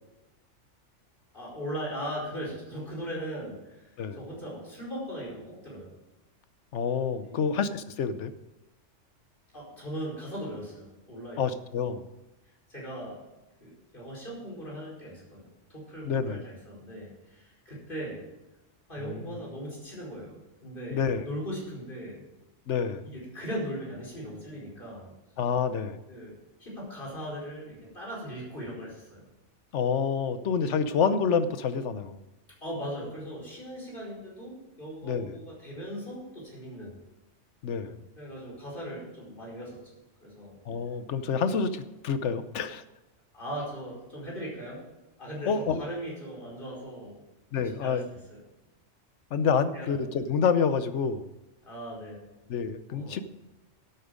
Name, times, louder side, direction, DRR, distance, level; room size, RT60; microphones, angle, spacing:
voice 1, 1.3-5.9 7.2-7.5 9.5-11.4 12.7-13.2 13.6-18.2 18.9-22.2 23.1-25.1 26.1-26.3 26.6-29.2 32.6-37.0 38.2-40.0 40.2-40.6 43.3-44.8 45.2-47.2 47.8-48.0 48.3-48.4 49.7-49.9 51.6-52.3 52.9-53.2, equal, 45° left, -4 dB, 5.0 m, -39 dB
voice 2, 6.7-8.3 11.4-12.1 16.0-16.4 19.0-19.4 20.9-21.3 22.7-23.0 25.4-26.0 29.7-32.2 35.0-35.4 37.6-38.0 40.7-42.8 45.5-45.8 47.5-48.1 49.3-51.3 52.5-53.2, left 6 dB, 70° left, 12 dB, 1.1 m, -28 dB
12.0 x 9.0 x 5.1 m, 1.0 s
omnidirectional pair, 1.3 m